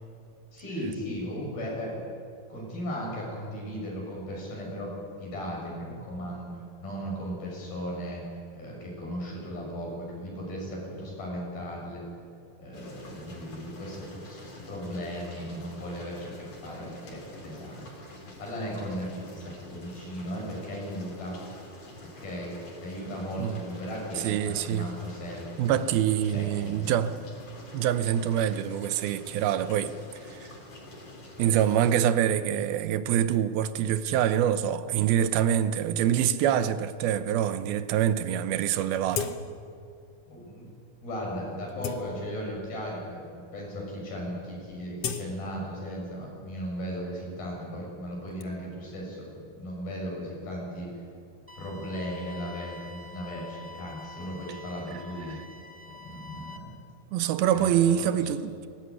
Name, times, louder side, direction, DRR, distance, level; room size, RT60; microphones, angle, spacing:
voice 1, 0.5-2.1 2.5-8.3 8.5-12.0 12.6-16.3 16.6-21.4 22.2-26.0 26.3-26.9 40.3-40.7 41.0-50.9 51.6-55.4 55.9-56.8 57.5-58.1, equal, 85° left, 8.9 m, -37 dB
sound 1, 12.7-32.0, left 1 dB, 45° left, 5.0 m, -47 dB
voice 2, 24.2-24.9 25.6-27.2 27.7-29.9 30.2-30.5 31.4-39.3 57.1-58.5, right 10 dB, 85° right, 2.8 m, -25 dB
sound 2, 39.1-39.8 40.2-40.3 41.0-41.1 41.5-42.7 43.3-43.4 43.7-44.1 44.3-46.2 46.5-48.4, left 6 dB, 60° left, 1.7 m, -38 dB
sound 3, 51.5-56.6, left 3 dB, 15° right, 1.2 m, -46 dB
20.0 x 18.5 x 9.8 m
omnidirectional pair, 4.2 m